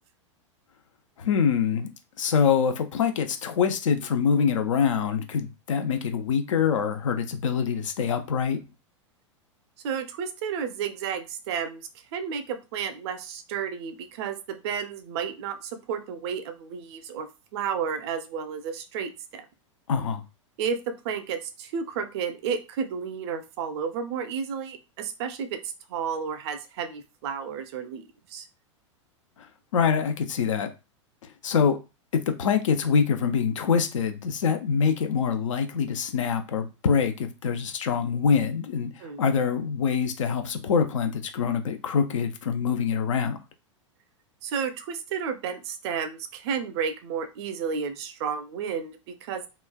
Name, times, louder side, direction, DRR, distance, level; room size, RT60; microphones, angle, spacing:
voice 1, 1.2-1.9 2.2-8.6 19.9-20.2 29.7-30.7 31.4-31.8 32.1-38.9 39.2-43.4, left 6 dB, 75° left, 0.5 m, -25 dB
voice 2, 9.8-11.8 12.1-19.4 20.6-25.6 25.9-28.5 39.0-39.2 44.4-49.5, right 6 dB, 55° right, 0.6 m, -32 dB
3.1 x 2.2 x 2.2 m
hypercardioid pair, 100°, 16 cm